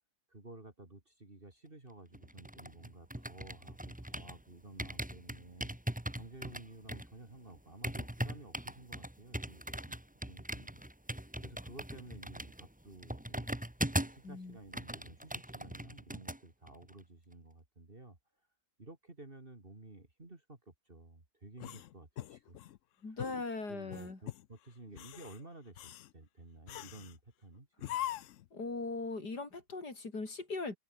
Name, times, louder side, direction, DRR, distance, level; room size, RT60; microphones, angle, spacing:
voice 1, 0.3-5.7 6.2-10.0 10.3-10.8 11.4-13.6 14.1-18.2 18.8-22.6 23.1-23.2 23.7-28.0, right 2 dB, 35° right, 3.4 m, -53 dB
sound 1, 2.1-4.4 4.8-14.3 14.6-16.4 16.7-16.9, right 1 dB, 5° right, 1.6 m, -40 dB
voice 2, 14.2-14.6 23.0-24.2 28.5-30.8, left 3 dB, 85° left, 4.9 m, -39 dB
sound 2, 21.6-22.8 23.2-23.4 23.9-24.5 24.9-25.4 25.8-26.1 26.7-27.2 27.8-28.5, left 13 dB, 65° left, 0.8 m, -42 dB
omnidirectional pair, 1.7 m